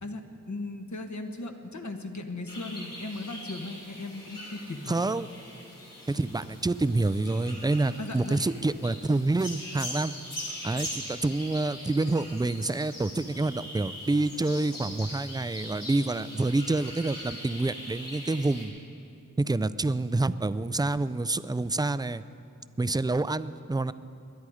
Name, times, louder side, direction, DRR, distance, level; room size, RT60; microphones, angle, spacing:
voice 1, 0.0-5.0 8.0-8.4, left 2 dB, 60° left, 5 dB, 1.3 m, -37 dB
sound 1, 2.5-18.6, left 1 dB, 85° left, 3.7 m, -42 dB
voice 2, 4.9-5.3 6.1-10.1 10.6-18.7 19.4-22.2 22.8-23.9, right 2 dB, 15° right, 15 dB, 0.4 m, -27 dB
21.0 x 11.0 x 4.9 m, 2.5 s
wide cardioid pair, 50°, 32 cm